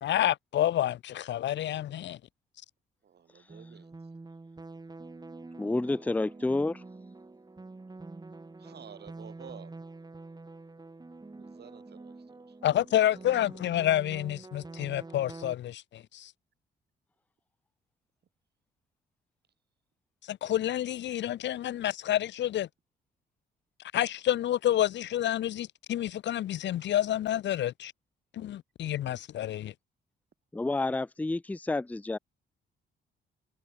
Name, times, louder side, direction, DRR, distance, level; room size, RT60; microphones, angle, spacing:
voice 1, 0.0-2.2 12.6-16.3 20.2-22.7 23.9-27.9 28.3-29.7, left 12 dB, 65° left, 0.8 m, -29 dB
voice 2, 3.0-3.9 8.6-9.7 11.3-12.6 13.1-13.3, right 8 dB, 55° right, 7.6 m, -51 dB
sound 1, 3.5-15.5, right 3 dB, 20° right, 5.4 m, -47 dB
voice 3, 5.6-6.8 30.5-32.2, left 2 dB, 10° left, 0.5 m, -29 dB
cardioid pair, 90°, 20 cm